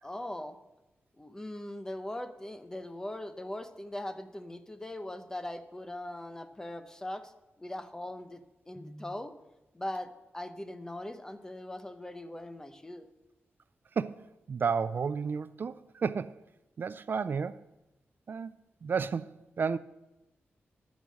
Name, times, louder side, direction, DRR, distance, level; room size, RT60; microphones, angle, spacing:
voice 1, 0.0-0.6 1.2-7.3 7.6-9.3 9.7-13.1, left 1 dB, 15° left, 0.8 m, -40 dB
voice 2, 14.0-16.4 16.8-17.6 18.3-18.5 18.8-19.8, right 5 dB, 50° right, 0.3 m, -32 dB
13.5 x 6.2 x 6.3 m
wide cardioid pair, 105°, 4 cm